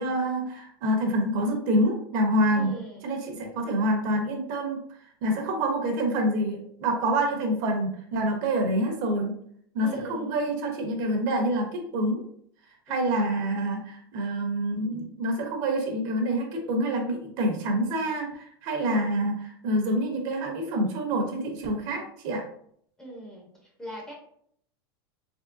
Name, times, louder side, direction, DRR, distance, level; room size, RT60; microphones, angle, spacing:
voice 1, 0.0-2.7 3.0-4.8 5.2-9.4 9.7-12.2 12.9-19.3 19.6-22.4, right 1 dB, 50° right, 3 dB, 0.8 m, -27 dB
voice 2, 2.5-3.2 9.8-10.5 12.9-13.4 18.8-19.2 23.0-24.1, right 1 dB, 5° left, -2 dB, 0.6 m, -41 dB
3.6 x 3.1 x 2.5 m, 0.65 s
supercardioid pair, 165°, 13 cm